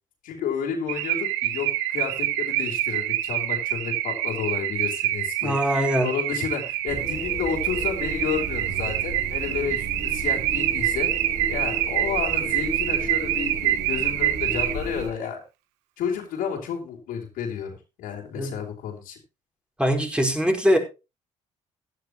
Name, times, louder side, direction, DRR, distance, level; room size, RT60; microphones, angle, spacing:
voice 1, 0.2-11.1 11.5-15.4 16.0-17.7 18.0-19.2, left 7 dB, 75° left, -1 dB, 3.6 m, -31 dB
Car / Alarm, 0.9-15.0, right 13 dB, 90° right, 1.1 m, -26 dB
voice 2, 5.4-6.1 18.3-18.5 19.8-20.8, equal, 5° right, 3 dB, 4.5 m, -22 dB
sound 1, 6.9-15.1, right 2 dB, 60° right, 6.0 m, -34 dB
16.0 x 11.0 x 3.0 m, 0.28 s
supercardioid pair, 65°, 15 cm